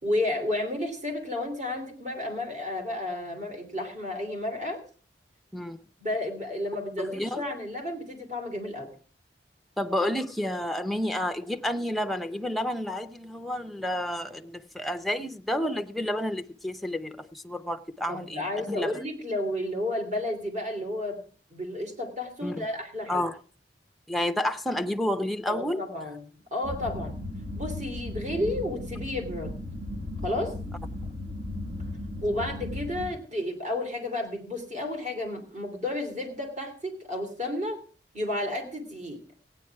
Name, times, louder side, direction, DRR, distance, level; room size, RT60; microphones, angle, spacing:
voice 1, 0.0-4.8 6.0-8.9 18.1-21.2 21.5-23.2 25.5-27.2 27.5-29.5 30.2-30.5 32.2-37.8 38.1-39.2, left 1 dB, 45° right, 2.9 m, -32 dB
voice 2, 7.0-7.4 9.8-18.9 22.4-22.7 23.1-23.4 24.1-25.8, left 1 dB, ahead, 0.5 m, -30 dB
sound 1, 26.6-33.1, left 1 dB, 85° right, 3.0 m, -36 dB
16.0 x 9.5 x 4.6 m
head